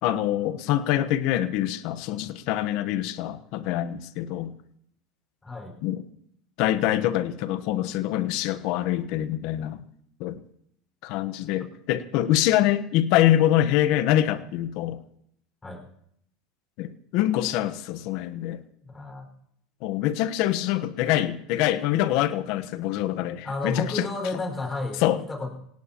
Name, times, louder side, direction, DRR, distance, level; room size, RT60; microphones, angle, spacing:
voice 1, 0.0-4.5 5.8-6.0 6.6-9.8 10.2-10.4 11.0-15.0 16.8-18.6 19.8-24.1 25.0-25.2, left 13 dB, 65° left, 12 dB, 1.1 m, -25 dB
voice 2, 5.4-5.8 15.6-15.8 18.8-19.3 23.4-25.5, left 2 dB, 20° left, 2 dB, 5.4 m, -32 dB
26.5 x 18.0 x 3.0 m, 0.72 s
hypercardioid pair, 95°, 0 cm